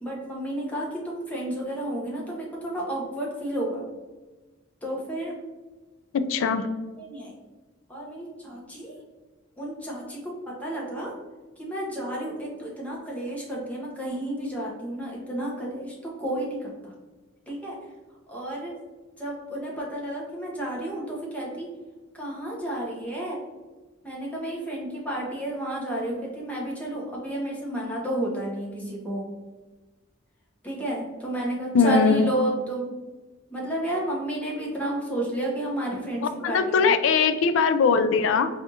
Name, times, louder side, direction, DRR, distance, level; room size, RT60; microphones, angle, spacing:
voice 1, 0.0-3.8 4.8-5.3 7.0-7.3 7.9-9.0 9.6-10.2 10.6-11.1 11.6-16.9 17.5-17.8 18.3-18.7 19.2-21.7 22.1-23.4 24.0-29.2 30.6-32.9 33.5-36.9, right 1 dB, 10° left, -4 dB, 0.9 m, -31 dB
voice 2, 6.3-6.6 31.7-32.3 36.2-38.5, left 5 dB, 70° left, 11 dB, 0.3 m, -21 dB
4.3 x 2.4 x 2.7 m, 1.2 s
head